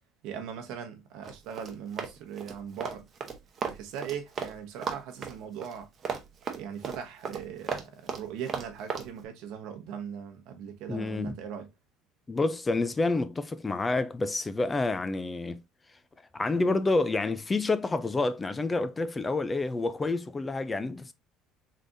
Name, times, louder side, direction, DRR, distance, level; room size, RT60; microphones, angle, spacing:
voice 1, 0.2-3.1 3.6-5.9 6.5-11.7, right 8 dB, 70° right, 1.0 m, -39 dB
Run, 1.2-4.6 4.8-9.1, right 6 dB, 35° right, 0.8 m, -35 dB
voice 2, 10.9-11.4 12.3-15.6 16.3-21.1, left 3 dB, 15° left, 0.4 m, -28 dB
3.8 x 3.3 x 2.6 m
cardioid pair, 125°, 0 cm